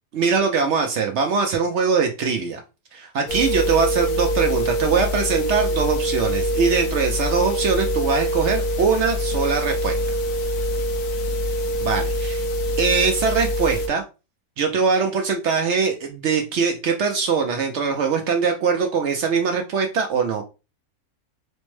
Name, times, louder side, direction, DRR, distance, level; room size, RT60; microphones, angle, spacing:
voice 1, 0.1-2.6 2.9-9.9 11.8-12.4 12.8-14.0 14.6-20.4, right 5 dB, 65° right, 4 dB, 0.7 m, -22 dB
sound 1, 3.3-13.9, equal, 70° left, 1.0 m, -24 dB
4.2 x 2.0 x 3.1 m, 0.29 s
omnidirectional pair, 1.5 m